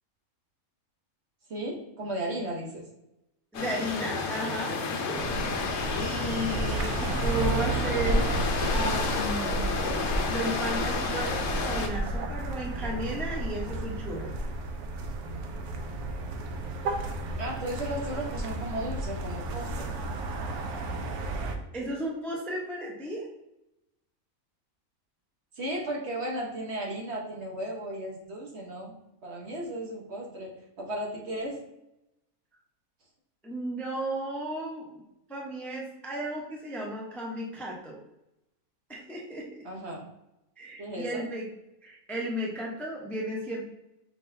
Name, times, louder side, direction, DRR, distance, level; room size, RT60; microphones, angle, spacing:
voice 1, 1.5-2.9 17.4-19.9 25.5-29.0 29.2-31.6 39.6-40.0 40.8-41.2, right 1 dB, 50° right, -1 dB, 1.1 m, -35 dB
sound 1, 3.5-11.9, left 4 dB, 60° left, 0.9 m, -31 dB
voice 2, 3.5-5.2 6.0-8.3 8.7-9.7 10.2-14.4 21.7-23.3 33.4-34.9 35.3-38.0 38.9-39.5 40.6-41.5 41.8-43.6, equal, ahead, -2 dB, 0.5 m, -34 dB
sound 2, 5.2-21.6, right 2 dB, 90° right, 1.1 m, -32 dB
5.0 x 3.9 x 2.6 m, 0.89 s
omnidirectional pair, 1.5 m